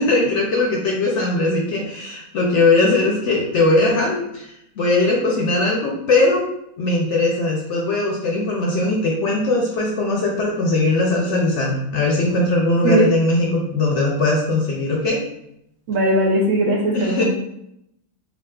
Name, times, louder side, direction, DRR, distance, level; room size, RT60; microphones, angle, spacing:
voice 1, 0.0-4.5 4.8-6.4 6.8-15.2 16.9-17.2, left 2 dB, 65° left, -2 dB, 0.8 m, -19 dB
voice 2, 15.9-17.2, right 1 dB, 65° right, -2 dB, 1.0 m, -18 dB
3.8 x 2.3 x 2.3 m, 0.78 s
omnidirectional pair, 1.6 m